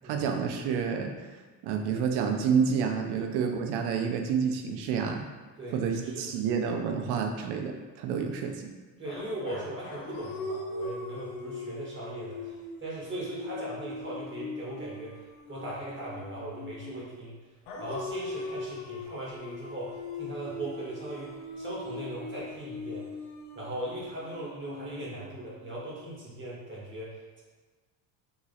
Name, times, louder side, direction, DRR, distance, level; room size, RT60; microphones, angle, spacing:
voice 1, 0.0-1.1 1.6-5.2 5.7-8.7, right 6 dB, 80° right, 4 dB, 0.6 m, -29 dB
voice 2, 5.6-6.3 9.0-17.3 17.8-23.0 23.5-27.4, right 1 dB, 30° right, -6 dB, 1.2 m, -39 dB
sound 1, 9.0-17.1 17.7-25.7, left 2 dB, 85° left, 0.7 m, -40 dB
2.9 x 2.4 x 4.1 m, 1.4 s
cardioid pair, 105°, 39 cm